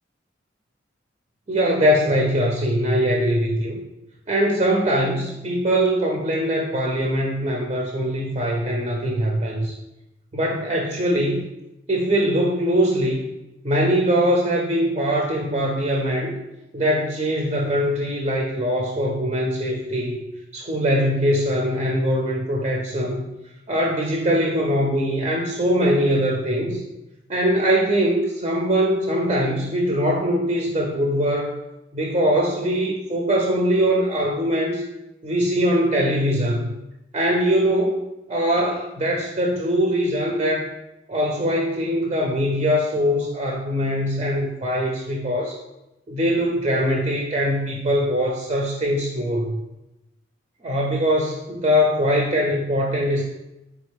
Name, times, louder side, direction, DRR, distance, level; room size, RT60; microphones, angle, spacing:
voice 1, 1.5-3.8 4.3-9.7 10.3-11.4 11.9-13.3 13.6-16.3 16.7-20.2 20.5-23.2 23.7-26.8 27.3-31.5 31.9-34.9 35.2-36.7 37.1-38.0 38.3-40.7 41.1-45.6 46.1-49.6 50.6-53.2, equal, 30° right, 0 dB, 0.4 m, -22 dB
4.1 x 3.2 x 3.4 m, 0.95 s
head